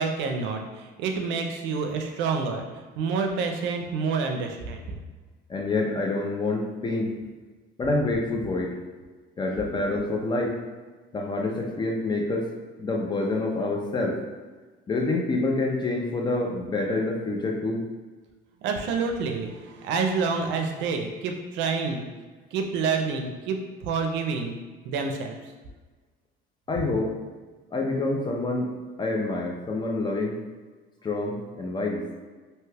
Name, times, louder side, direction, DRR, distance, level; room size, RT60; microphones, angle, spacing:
voice 1, 0.0-5.0 18.6-22.1 22.5-24.6 24.8-25.4, right 5 dB, 80° right, 3 dB, 0.5 m, -28 dB
voice 2, 5.5-7.1 7.8-8.7 9.4-10.5 11.1-12.5 12.8-14.2 14.9-17.8 26.7-27.1 27.7-28.7 29.0-30.4 31.0-32.0, left 2 dB, 25° left, 1 dB, 0.4 m, -27 dB
2.8 x 2.2 x 3.2 m, 1.3 s
cardioid pair, 120°, 19 cm